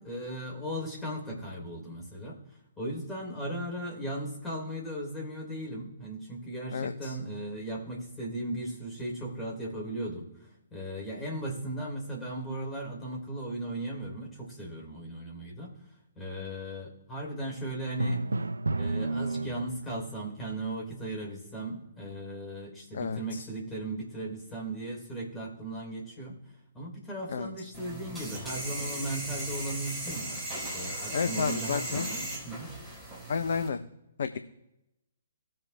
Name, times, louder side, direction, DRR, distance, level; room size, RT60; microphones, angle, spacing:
voice 1, 0.0-2.4 2.8-15.8 16.2-18.2 18.8-26.4 26.7-32.7, right 1 dB, 15° left, -2 dB, 3.4 m, -37 dB
voice 2, 6.7-7.2 22.9-23.4 27.3-27.5 31.1-32.1 33.3-33.8 34.2-34.4, left 5 dB, 55° left, 9 dB, 0.6 m, -31 dB
Drum, 18.0-20.0, right 3 dB, 75° right, 0.4 m, -31 dB
sound 1, 27.7-33.7, right 1 dB, 5° right, 4.2 m, -37 dB
18.0 x 7.7 x 2.2 m, 0.90 s
figure-of-eight pair, 125°, 0 cm